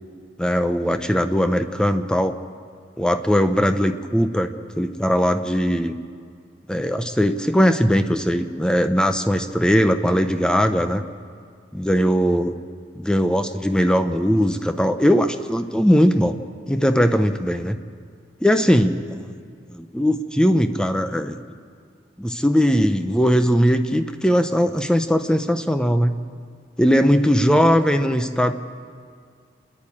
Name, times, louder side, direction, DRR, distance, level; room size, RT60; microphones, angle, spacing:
voice 1, 0.4-2.3 3.0-4.5 4.8-5.9 6.7-11.0 11.7-12.5 13.0-16.4 16.7-17.8 18.4-19.3 19.7-21.4 22.2-26.1 26.8-28.5, equal, 5° left, 8 dB, 0.7 m, -19 dB
28.0 x 11.0 x 8.7 m, 2.1 s
head